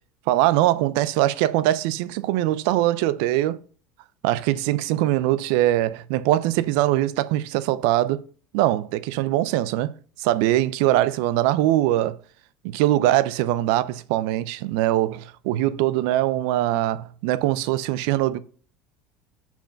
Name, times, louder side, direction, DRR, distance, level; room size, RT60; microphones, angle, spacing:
voice 1, 0.3-3.6 4.2-8.2 8.5-9.9 10.2-12.1 12.6-18.4, right 14 dB, 70° right, 0.5 m, -22 dB
5.8 x 4.5 x 5.7 m
hypercardioid pair, 80°, 0 cm